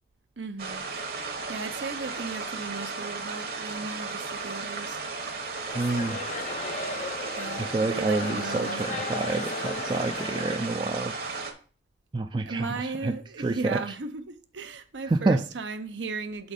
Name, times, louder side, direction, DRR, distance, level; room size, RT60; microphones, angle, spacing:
voice 1, 0.4-0.8 1.5-5.0 7.4-8.8 12.4-16.5, right 4 dB, 80° right, 0.7 m, -36 dB
sound 1, 0.6-11.5, right 4 dB, 55° right, 1.0 m, -35 dB
sound 2, 5.7-10.8, left 4 dB, 40° left, 0.5 m, -36 dB
voice 2, 5.7-6.2 7.6-11.1 12.1-13.8 15.1-15.4, right 3 dB, 25° right, 0.3 m, -28 dB
6.2 x 4.1 x 4.9 m
head